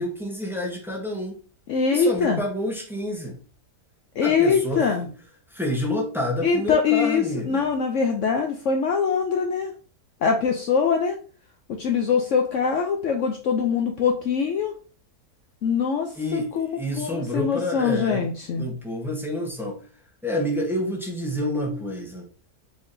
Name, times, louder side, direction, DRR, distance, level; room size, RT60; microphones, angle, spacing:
voice 1, 0.0-1.4 1.9-3.4 4.2-4.9 5.5-7.7 16.2-18.3 18.6-19.8 20.2-22.3, left 1 dB, ahead, -2 dB, 0.6 m, -28 dB
voice 2, 1.7-2.4 4.2-5.1 6.4-9.7 10.2-11.2 11.7-14.7 15.6-18.6, left 6 dB, 70° left, 3 dB, 0.7 m, -23 dB
4.8 x 3.8 x 2.6 m, 0.39 s
omnidirectional pair, 1.8 m